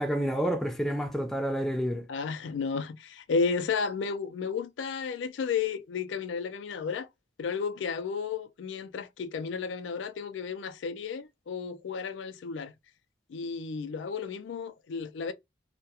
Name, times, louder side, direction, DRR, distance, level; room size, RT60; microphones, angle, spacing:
voice 1, 0.0-2.0, equal, ahead, 0.4 m, -29 dB
voice 2, 2.1-7.1 7.4-12.7 13.3-15.3, left 5 dB, 85° left, 0.4 m, -33 dB
2.3 x 2.1 x 2.7 m
head